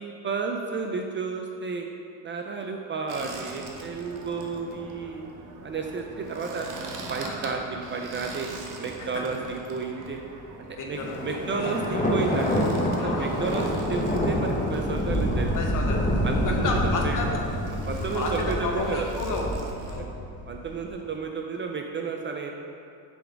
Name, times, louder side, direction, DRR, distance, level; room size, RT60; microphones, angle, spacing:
voice 1, 0.0-1.9 2.2-5.2 5.6-6.7 7.1-8.5 8.8-10.2 10.8-12.5 12.9-15.8 16.2-17.1 17.9-19.4 20.0-20.1 20.5-22.5, right 5 dB, 30° right, 2 dB, 0.4 m, -32 dB
sound 1, 3.1-20.0, right 2 dB, 45° right, 0.9 m, -42 dB
voice 2, 10.8-11.7 13.0-13.4 15.5-17.4 18.1-20.1, left 3 dB, 50° left, 0 dB, 1.1 m, -32 dB
Thunder, 10.9-20.8, equal, 20° left, 1.0 m, -27 dB
6.9 x 3.9 x 4.5 m, 2.4 s
cardioid pair, 105°, 41 cm